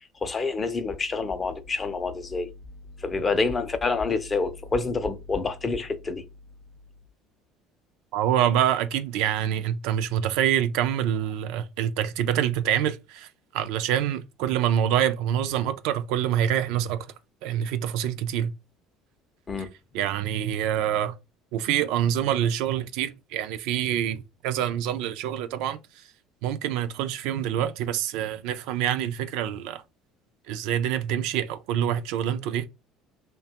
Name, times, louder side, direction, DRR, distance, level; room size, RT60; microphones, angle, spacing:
voice 1, 0.2-2.5 3.0-6.2 19.5-19.7, left 4 dB, 25° left, 0.4 m, -27 dB
voice 2, 8.1-13.3 13.5-17.1 17.4-18.5 19.9-21.1 21.5-25.8 26.4-29.8 30.5-32.7, right 10 dB, 75° right, 0.3 m, -26 dB
2.9 x 2.2 x 2.8 m
supercardioid pair, 115°, 0 cm